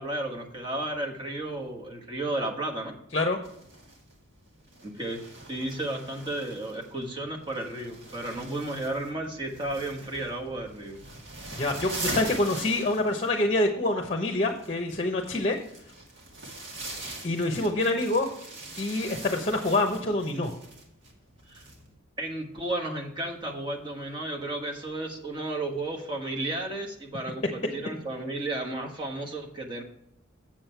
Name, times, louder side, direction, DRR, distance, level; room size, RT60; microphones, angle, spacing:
voice 1, 0.0-2.9 4.8-5.2 5.5-11.0 21.5-21.6 22.2-29.8, right 2 dB, 25° right, 0 dB, 1.4 m, -33 dB
sound 1, 3.4-21.9, right 2 dB, 60° right, 2.0 m, -42 dB
voice 2, 11.5-15.6 17.2-18.3 18.8-20.5, left 2 dB, 35° left, 5 dB, 0.8 m, -26 dB
7.5 x 7.4 x 4.5 m, 0.75 s
head